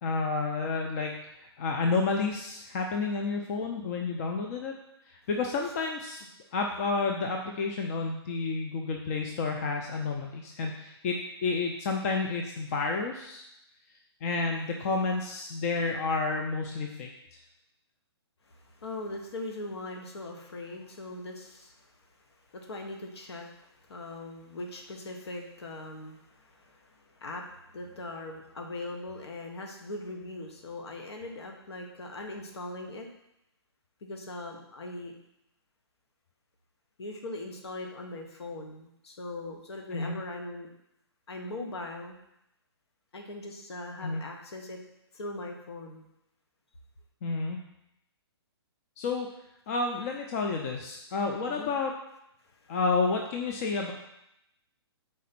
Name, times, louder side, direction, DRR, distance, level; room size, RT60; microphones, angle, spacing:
voice 1, 0.0-4.7 5.0-6.2 6.5-13.4 14.2-17.4 39.9-40.2 44.0-44.2 47.2-47.6 49.0-49.3 49.7-51.9 52.7-53.9, left 4 dB, 35° left, 2 dB, 0.6 m, -30 dB
voice 2, 18.4-33.1 34.0-35.2 37.0-40.7 41.3-42.2 43.1-44.8 45.1-46.0 51.4-51.7 52.4-52.7, left 2 dB, 75° left, 2 dB, 1.2 m, -40 dB
4.8 x 4.3 x 5.9 m, 0.83 s
hypercardioid pair, 150°, 14 cm